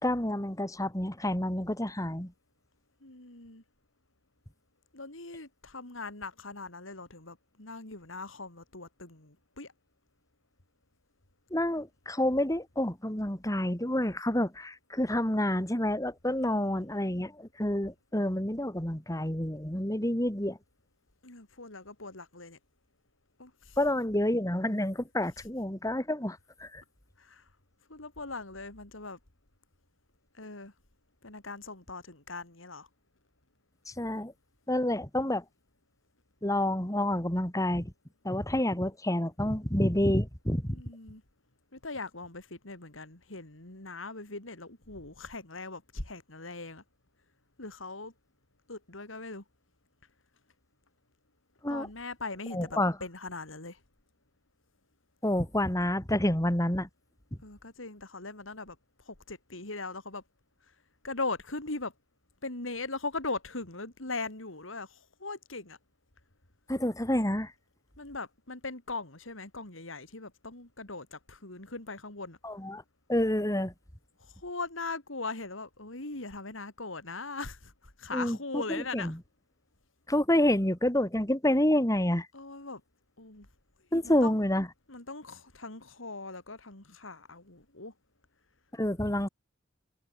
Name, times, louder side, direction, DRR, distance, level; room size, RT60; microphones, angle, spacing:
voice 1, 0.0-2.3 11.5-20.6 23.8-26.8 33.9-34.3 34.7-35.4 36.4-37.9 38.2-40.8 51.6-51.9 52.5-53.0 55.2-56.9 66.7-67.5 72.4-72.8 73.1-73.7 78.1-79.2 80.1-82.3 83.9-84.7 88.7-89.3, left 1 dB, 15° left, 3.9 m, -28 dB
voice 2, 3.0-3.6 4.9-9.7 16.4-16.9 21.2-22.6 23.4-23.8 27.2-27.4 27.9-29.2 30.4-30.7 31.2-32.9 40.7-41.2 41.7-46.8 47.6-48.1 48.7-49.4 51.7-53.8 57.4-58.8 59.1-60.2 61.0-61.9 62.4-65.8 68.0-72.4 74.2-79.2 82.3-82.8 83.2-83.5 83.9-84.4 84.9-87.9, left 3 dB, 90° left, 4.3 m, -40 dB
head